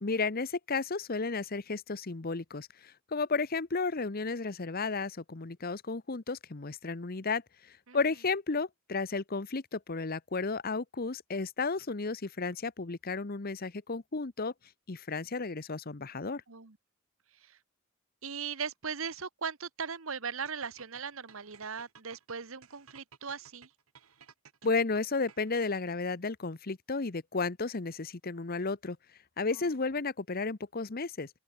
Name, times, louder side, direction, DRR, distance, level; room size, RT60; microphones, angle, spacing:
voice 1, 0.0-7.4 7.9-14.5 14.9-16.4 24.6-29.0 29.4-31.3, left 4 dB, 45° left, 0.9 m, -33 dB
voice 2, 18.2-23.7 29.5-29.7, right 6 dB, 70° right, 1.4 m, -39 dB
sound 1, 20.5-26.0, right 7 dB, 90° right, 2.3 m, -57 dB
open air
head